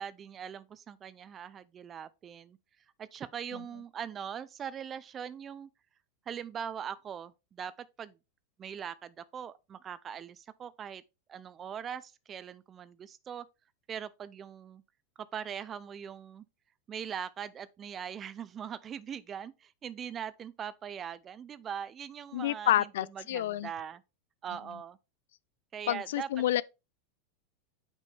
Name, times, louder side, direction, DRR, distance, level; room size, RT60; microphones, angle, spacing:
voice 1, 0.0-2.6 3.0-5.7 6.3-8.1 8.6-11.0 11.3-13.5 13.9-14.8 15.3-16.4 16.9-22.9 23.2-24.0 24.4-25.0 25.7-26.3, right 8 dB, 30° right, 0.4 m, -41 dB
voice 2, 22.3-23.7 25.9-26.6, left 13 dB, 75° left, 0.3 m, -29 dB
6.2 x 5.3 x 3.4 m
hypercardioid pair, 115°, 0 cm